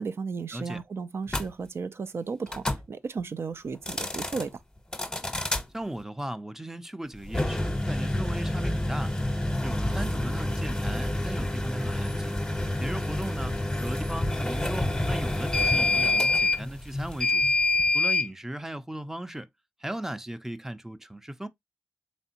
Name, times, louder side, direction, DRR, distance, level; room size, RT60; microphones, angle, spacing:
voice 1, 0.0-4.6, right 5 dB, 60° right, 0.5 m, -34 dB
sound 1, 1.3-1.5 2.5-2.8 3.7-4.4 4.9-5.6 7.2-18.3, left 2 dB, 15° left, 0.9 m, -27 dB
voice 2, 5.7-9.1 9.6-12.3 12.8-17.4 17.9-19.5 19.8-21.5, right 1 dB, 10° right, 0.5 m, -37 dB
4.2 x 3.4 x 2.8 m
cardioid pair, 65°, 5 cm